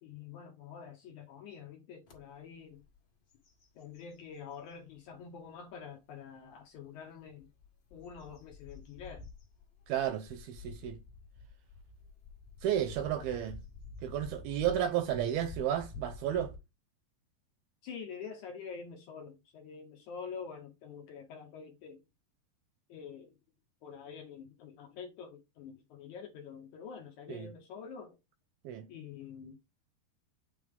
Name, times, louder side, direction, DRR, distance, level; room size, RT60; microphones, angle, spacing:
voice 1, 0.0-2.8 3.8-7.5 7.9-9.3 13.1-13.4 17.8-22.0 22.9-23.4 23.8-28.2 28.9-29.6, left 6 dB, 85° left, 1.7 m, -47 dB
sound 1, 2.1-2.2 2.7-3.0 3.3-4.8 5.4-5.5 7.2-16.6, left 4 dB, 45° left, 1.5 m, -49 dB
voice 2, 9.9-11.0 12.6-13.6 14.0-16.5 27.3-27.5 28.6-28.9, right 10 dB, 80° right, 2.3 m, -32 dB
8.7 x 3.4 x 3.6 m
omnidirectional pair, 4.8 m